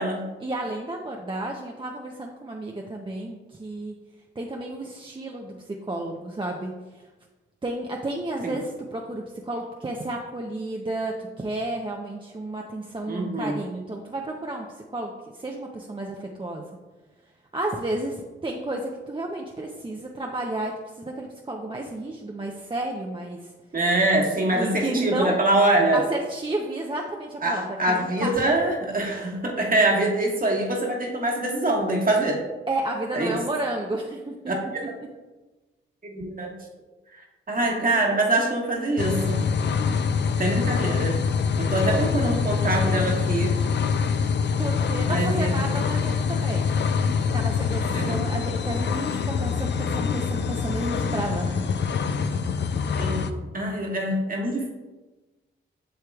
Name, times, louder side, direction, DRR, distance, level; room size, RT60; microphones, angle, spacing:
voice 1, 0.4-4.0 4.4-6.7 7.6-14.7 14.9-16.6 17.5-23.5 24.5-25.4 25.9-28.5 32.7-34.3 41.8-42.0 44.6-46.8 47.3-51.6, right 2 dB, 25° right, 0 dB, 0.6 m, -32 dB
voice 2, 13.1-13.6 23.7-26.0 27.4-32.4 33.1-33.4 34.5-34.8 36.0-36.5 37.2-39.4 40.4-41.2 41.6-43.5 45.1-45.7 47.9-48.3 53.0-54.7, right 2 dB, 40° right, -1 dB, 1.5 m, -24 dB
sound 1, 39.0-53.3, left 6 dB, 60° left, 0.5 m, -25 dB
7.7 x 6.6 x 2.3 m, 1.2 s
cardioid pair, 70°, 21 cm